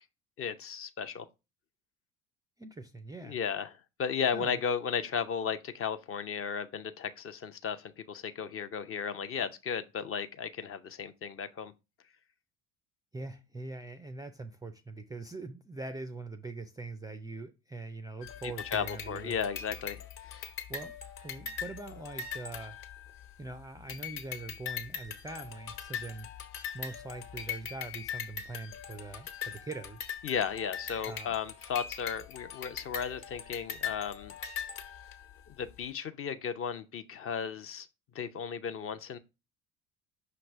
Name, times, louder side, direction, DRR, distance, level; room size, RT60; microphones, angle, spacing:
voice 1, 0.4-1.2 3.2-3.7 4.0-11.7 18.7-20.5 30.2-34.3 35.5-37.9 38.1-39.2, left 7 dB, 30° left, 0.6 m, -35 dB
voice 2, 2.6-3.4 4.3-4.6 13.1-19.4 20.7-22.8 23.4-26.3 26.7-30.1 31.0-31.3, right 2 dB, 10° right, 0.4 m, -43 dB
sound 1, 18.2-23.5 23.9-35.4, left 7 dB, 50° left, 1.3 m, -41 dB
5.8 x 3.2 x 5.3 m
figure-of-eight pair, 65°, 44 cm